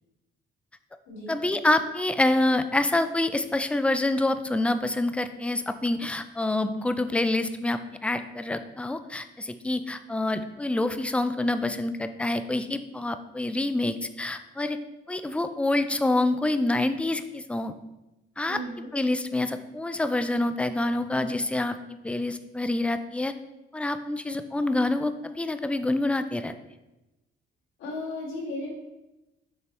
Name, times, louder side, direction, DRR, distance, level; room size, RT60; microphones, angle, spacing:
voice 1, 1.3-14.8 15.1-17.8 18.4-18.6 18.9-21.8 22.0-23.3 23.7-26.5, left 2 dB, 5° left, 10 dB, 0.4 m, -27 dB
voice 2, 18.5-18.9 27.8-28.7, left 1 dB, 85° left, -4 dB, 2.0 m, -35 dB
6.9 x 4.4 x 3.3 m, 1.0 s
cardioid pair, 90°, 20 cm